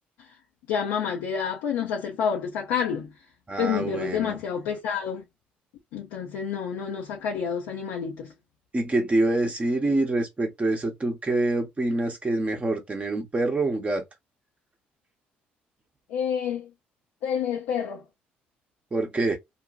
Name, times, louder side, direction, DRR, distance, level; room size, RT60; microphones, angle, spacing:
voice 1, 0.7-3.1 3.6-5.2 5.9-8.3 16.1-16.7 17.2-18.0, left 7 dB, 70° left, 0.6 m, -28 dB
voice 2, 3.5-4.4 8.7-14.0 18.9-19.4, right 2 dB, 25° right, 0.8 m, -26 dB
2.6 x 2.2 x 2.5 m
hypercardioid pair, 50°, 5 cm